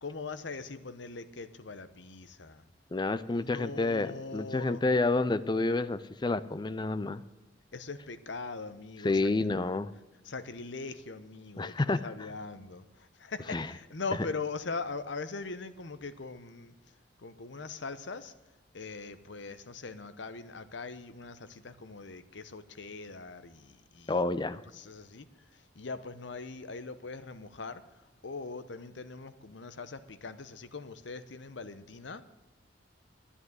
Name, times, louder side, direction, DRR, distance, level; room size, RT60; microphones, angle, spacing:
voice 1, 0.0-2.6 3.2-4.8 7.7-9.3 10.2-18.3 18.7-24.2 24.7-32.2, left 4 dB, 70° left, 12 dB, 0.8 m, -41 dB
voice 2, 2.9-7.2 9.0-9.9 11.6-12.1 13.5-13.7 24.1-24.6, left 3 dB, 25° left, 15 dB, 0.4 m, -29 dB
11.0 x 9.9 x 7.9 m, 1.1 s
head